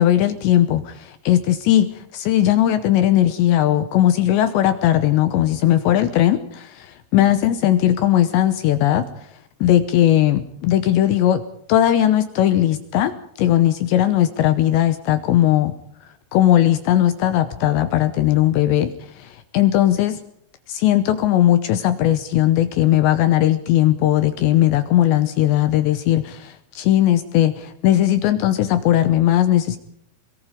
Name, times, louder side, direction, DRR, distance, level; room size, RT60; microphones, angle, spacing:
voice 1, 0.0-9.1 9.6-11.4 11.7-15.7 16.3-20.2 20.7-29.8, left 12 dB, 75° left, 10 dB, 2.7 m, -18 dB
22.5 x 22.0 x 5.1 m, 0.69 s
omnidirectional pair, 5.9 m